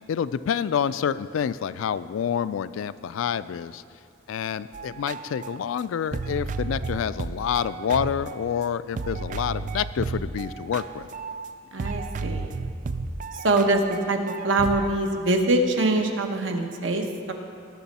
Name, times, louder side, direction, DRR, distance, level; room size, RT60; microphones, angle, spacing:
voice 1, 0.1-3.8 4.3-11.1, left 8 dB, 75° left, 15 dB, 0.3 m, -28 dB
sound 1, 4.7-8.6 8.9-11.5 11.8-14.9, right 4 dB, 40° right, 0.3 m, -33 dB
voice 2, 11.7-12.6 13.3-14.2 14.4-17.3, right 2 dB, 70° right, 4 dB, 0.9 m, -24 dB
17.5 x 6.2 x 4.2 m, 2.3 s
head